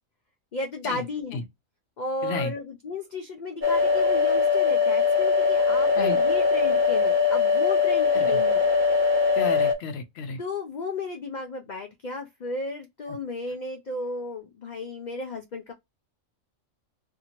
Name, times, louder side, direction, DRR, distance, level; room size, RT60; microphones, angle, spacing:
voice 1, 0.5-1.4 2.0-8.7 10.4-15.7, left 3 dB, 80° left, 0.4 m, -34 dB
voice 2, 2.2-2.5 6.0-6.2 8.1-8.4 9.3-10.4 13.1-13.2, left 4 dB, 60° left, 0.8 m, -32 dB
sound 1, 3.6-9.7, left 5 dB, 45° right, 0.7 m, -21 dB
2.7 x 2.5 x 2.8 m
omnidirectional pair, 1.4 m